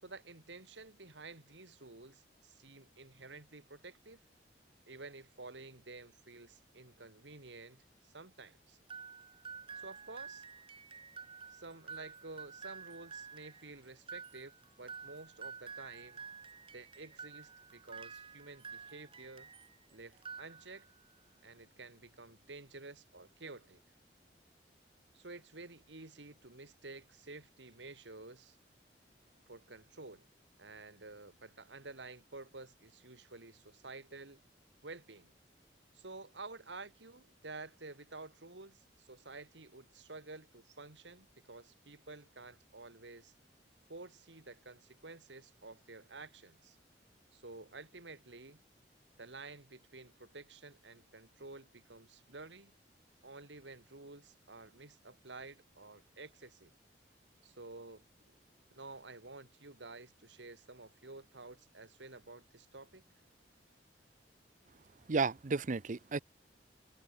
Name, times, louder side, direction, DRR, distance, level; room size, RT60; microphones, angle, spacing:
voice 1, 0.0-4.2 4.9-8.8 9.8-10.4 11.5-16.2 16.7-19.5 19.9-20.9 21.4-23.8 25.1-28.6 29.5-30.3 30.6-34.4 34.8-35.3 35.9-43.3 43.9-46.8 47.3-48.6 49.2-52.7 53.2-56.7 57.4-58.4 58.7-63.0, right 3 dB, 85° right, 2.7 m, -51 dB
sound 1, 8.9-19.8 20.1-21.0, right 5 dB, 30° right, 3.9 m, -50 dB
voice 2, 65.1-66.2, right 4 dB, 45° right, 0.7 m, -32 dB
head